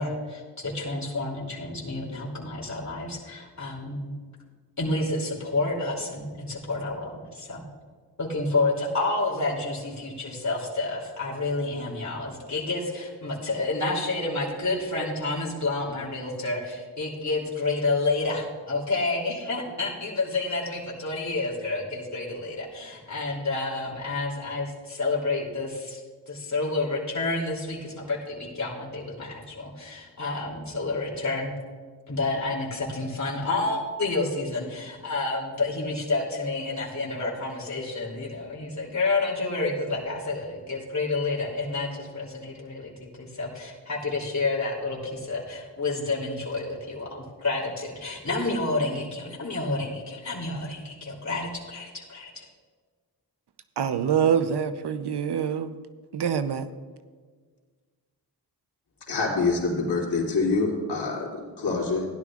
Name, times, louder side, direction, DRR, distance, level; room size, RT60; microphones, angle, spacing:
voice 1, 0.0-4.1 4.8-7.6 8.2-26.0 26.3-31.5 32.1-52.5, left 3 dB, 45° left, -4 dB, 2.9 m, -29 dB
voice 2, 53.8-55.7 56.1-56.7, right 7 dB, 80° right, 11 dB, 0.7 m, -25 dB
voice 3, 59.1-62.0, left 3 dB, 85° left, -4 dB, 2.7 m, -26 dB
16.0 x 11.0 x 2.4 m, 1.5 s
wide cardioid pair, 80°, 39 cm